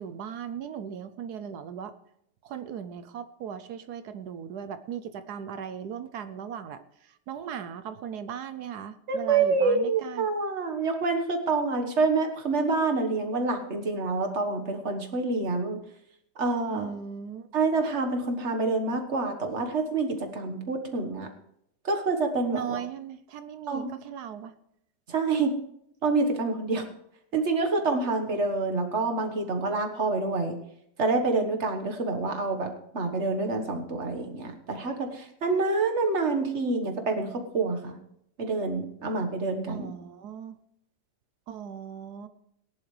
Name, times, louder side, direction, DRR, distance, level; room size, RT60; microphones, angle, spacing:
voice 1, 0.0-1.9 2.4-10.3 16.7-17.5 22.5-24.5 39.7-40.6 41.5-42.3, right 8 dB, 70° right, 11 dB, 1.1 m, -38 dB
voice 2, 9.1-15.8 16.4-16.9 17.5-21.3 21.8-22.8 23.7-23.9 25.1-25.6 26.0-26.9 27.3-30.6 31.0-38.0 38.4-39.9, right 3 dB, 40° right, 5 dB, 1.6 m, -27 dB
19.0 x 10.5 x 3.3 m, 0.75 s
omnidirectional pair, 1.9 m